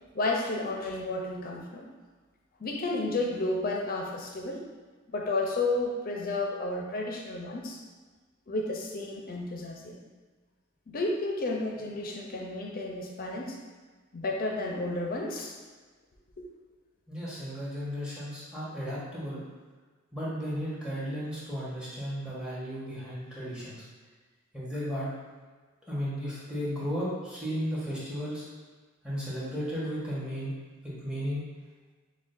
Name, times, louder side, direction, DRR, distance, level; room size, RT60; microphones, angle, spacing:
voice 1, 0.1-1.9 2.6-4.6 5.1-7.8 8.5-10.0 10.9-13.6 14.1-15.6 16.4-16.5, left 2 dB, 45° left, 0 dB, 0.5 m, -32 dB
voice 2, 17.1-19.4 20.1-23.8 24.5-25.1 25.9-28.4 29.0-30.5 30.8-31.5, equal, 5° right, -9 dB, 1.2 m, -34 dB
6.0 x 2.3 x 2.5 m, 1.4 s
head